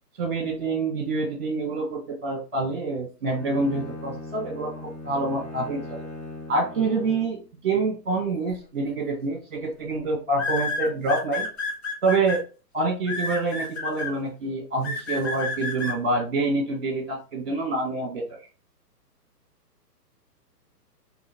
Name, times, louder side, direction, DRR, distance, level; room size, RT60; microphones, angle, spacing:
voice 1, 0.2-6.0 6.5-7.4 7.6-11.5 12.0-12.4 12.7-18.2, right 3 dB, 40° right, 2 dB, 1.1 m, -26 dB
Bowed string instrument, 3.2-7.5, left 2 dB, 10° left, 1.2 m, -39 dB
sound 1, 8.9-9.2 10.4-12.4 13.1-14.1 14.8-15.9, left 3 dB, 40° left, 0.9 m, -29 dB
2.9 x 2.7 x 2.8 m, 0.35 s
hypercardioid pair, 180°, 48 cm